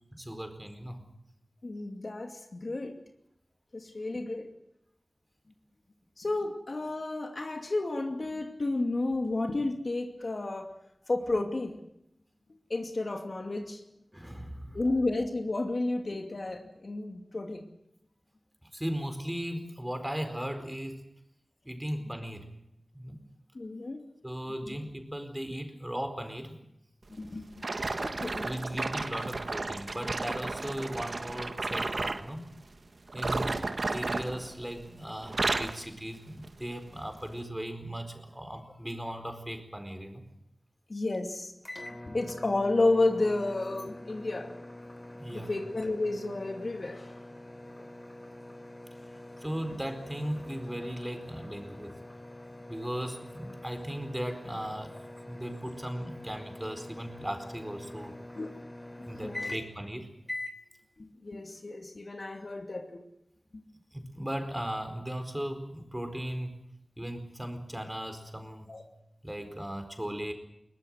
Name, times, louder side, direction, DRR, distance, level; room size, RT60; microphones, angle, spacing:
voice 1, 0.2-1.0 14.1-14.8 18.6-21.0 21.6-22.5 22.9-23.2 24.2-26.6 28.4-32.5 33.1-33.6 33.9-40.2 45.2-45.5 49.4-52.0 52.7-55.0 55.2-58.1 59.1-60.1 63.9-66.6 67.0-68.7 69.2-70.3, equal, 10° right, 6 dB, 4.5 m, -37 dB
voice 2, 1.6-2.9 3.7-4.5 6.2-10.7 11.1-11.8 12.7-13.8 14.7-17.7 23.5-24.0 24.7-24.8 27.1-27.7 28.0-28.5 40.9-41.5 42.1-44.5 45.3-47.1 58.4-58.5 59.2-59.5 61.0-63.0 63.5-63.7 68.7-68.8, left 2 dB, 55° left, 4 dB, 2.5 m, -31 dB
sound 1, 27.6-32.3 33.1-34.9 35.2-35.8 36.4-36.6 37.3-37.4, right 3 dB, 60° right, 1.6 m, -33 dB
sound 2, 41.6-59.9 60.3-60.6, left 1 dB, 25° left, 3.3 m, -44 dB
22.5 x 19.5 x 7.9 m, 0.80 s
wide cardioid pair, 60°, 0 cm